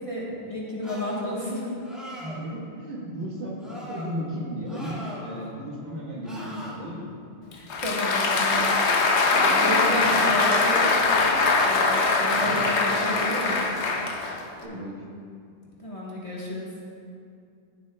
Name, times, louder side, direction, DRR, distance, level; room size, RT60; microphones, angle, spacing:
voice 1, 0.0-1.7 7.5-8.7 8.9-13.6 15.8-16.7, equal, 30° left, -6 dB, 1.3 m, -31 dB
sound 1, 0.8-1.3 1.8-2.5 3.6-4.1 4.7-5.5 6.2-6.7 8.1-8.6, left 1 dB, ahead, 1.6 m, -40 dB
voice 2, 2.2-7.1 9.9-10.2 12.3-12.6 14.6-15.0, equal, 70° right, -5 dB, 1.7 m, -35 dB
Applause, 7.5-14.6, left 3 dB, 70° left, 1.0 m, -22 dB
14.5 x 7.5 x 2.2 m, 2.4 s
omnidirectional pair, 1.2 m